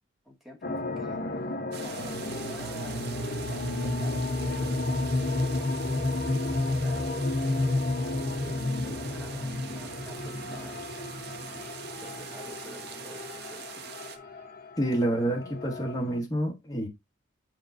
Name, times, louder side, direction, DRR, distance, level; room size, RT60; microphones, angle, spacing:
voice 1, 0.2-3.1 3.5-14.0, right 1 dB, ahead, 2.0 m, -49 dB
sound 1, 0.6-16.2, left 2 dB, 50° left, 1.0 m, -32 dB
sound 2, 1.7-14.2, right 7 dB, 55° right, 1.0 m, -44 dB
voice 2, 14.8-16.9, right 1 dB, 20° left, 1.9 m, -28 dB
7.9 x 5.2 x 2.6 m
head